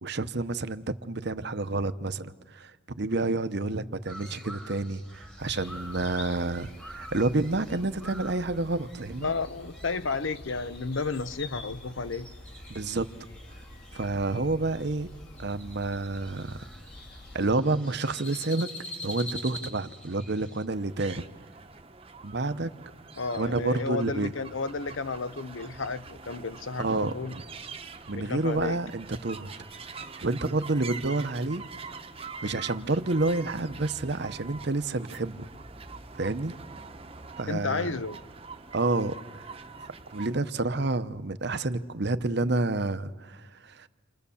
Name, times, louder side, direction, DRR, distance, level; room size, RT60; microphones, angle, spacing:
voice 1, 0.0-2.7 3.0-9.3 12.7-13.1 13.9-15.1 15.4-16.6 17.3-18.7 19.0-21.3 22.2-22.7 23.4-24.3 26.8-27.4 28.1-29.5 30.2-31.6 32.4-35.5 36.1-36.5 37.4-37.9 38.7-39.4 39.9-43.9, right 2 dB, 55° right, 0.9 m, -29 dB
Crow, 4.1-20.7, left 1 dB, 5° left, 1.5 m, -46 dB
sound 1, 5.4-17.6, left 2 dB, 50° left, 2.4 m, -46 dB
voice 2, 9.2-12.3 23.2-27.4 28.1-28.8 37.5-38.2, left 4 dB, 70° left, 0.8 m, -32 dB
sound 2, 20.7-40.3, right 4 dB, 30° right, 1.0 m, -44 dB
29.0 x 26.5 x 7.1 m
head